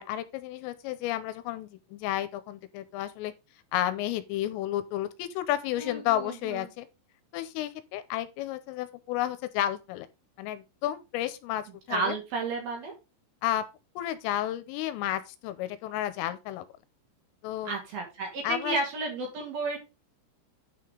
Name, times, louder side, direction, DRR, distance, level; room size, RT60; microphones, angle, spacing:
voice 1, 0.0-3.3 3.7-6.9 7.3-10.1 10.4-12.1 13.4-13.7 14.0-16.7 17.4-17.7 18.4-18.8, left 13 dB, 85° left, 3.3 m, -32 dB
voice 2, 5.8-6.6 11.9-12.9 17.7-19.8, right 3 dB, 55° right, 3.6 m, -32 dB
9.7 x 4.9 x 5.0 m
omnidirectional pair, 6.0 m